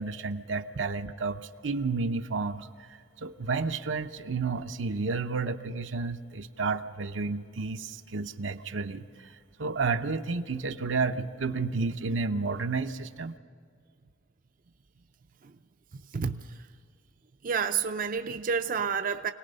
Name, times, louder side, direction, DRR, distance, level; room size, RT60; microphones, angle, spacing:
voice 1, 0.0-2.7 3.2-9.3 9.6-13.4, right 4 dB, 85° right, 7 dB, 0.8 m, -31 dB
voice 2, 17.4-19.3, right 6 dB, 45° right, 8 dB, 0.5 m, -29 dB
26.0 x 18.5 x 5.4 m, 2.2 s
head